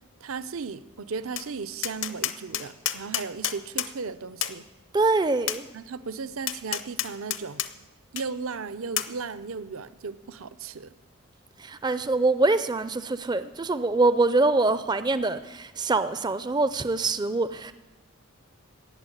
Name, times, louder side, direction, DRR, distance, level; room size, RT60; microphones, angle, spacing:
voice 1, 0.2-4.6 5.7-7.6 8.1-10.9, right 5 dB, 75° right, 14 dB, 0.6 m, -36 dB
Tap, 1.4-1.5 1.8-3.9 4.4-4.6 5.5-5.6 6.5-7.7 8.2-8.3 9.0-9.1, left 12 dB, 60° left, 0.8 m, -29 dB
voice 2, 4.9-5.7 11.6-17.7, right 3 dB, 20° right, 13 dB, 0.4 m, -24 dB
17.5 x 7.2 x 9.8 m, 1.1 s
head